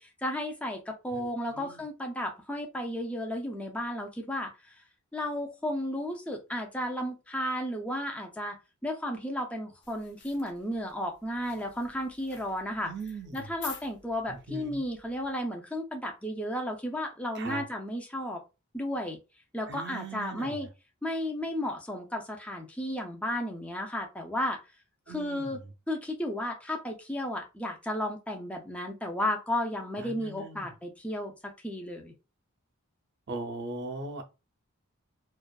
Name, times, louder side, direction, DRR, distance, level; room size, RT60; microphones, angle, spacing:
voice 1, 0.0-4.7 5.1-8.6 8.8-12.9 13.3-18.4 18.7-19.2 19.5-20.7 21.0-24.6 25.1-25.6 25.9-32.1, left 1 dB, 5° left, 0.5 m, -33 dB
voice 2, 1.1-1.8 12.8-13.5 14.3-14.8 17.3-17.7 19.7-20.7 25.1-25.7 30.0-30.7 33.3-34.2, right 3 dB, 55° right, 0.5 m, -40 dB
sound 1, 9.8-15.4, left 5 dB, 55° left, 0.7 m, -49 dB
2.4 x 2.3 x 2.3 m
head